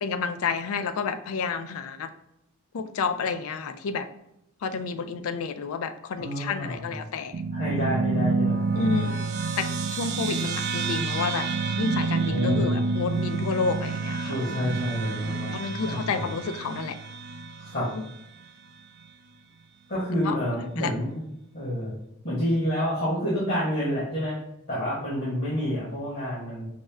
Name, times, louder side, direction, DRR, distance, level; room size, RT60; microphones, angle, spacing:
voice 1, 0.0-2.1 2.7-4.1 4.6-7.3 8.8-9.3 9.6-11.5 11.8-14.3 15.5-17.0 17.9-18.0 20.2-20.4 20.8-20.9, left 5 dB, 75° left, 10 dB, 0.4 m, -30 dB
voice 2, 6.2-6.9 7.5-9.0 12.3-12.8 14.2-15.6 15.8-16.3 17.6-17.9 19.9-21.2 21.5-21.9 22.2-24.4 24.7-26.7, equal, 50° left, -8 dB, 1.2 m, -28 dB
sound 1, 7.3-18.1, right 4 dB, 50° right, 0.3 m, -28 dB
5.0 x 2.1 x 3.4 m, 0.82 s
head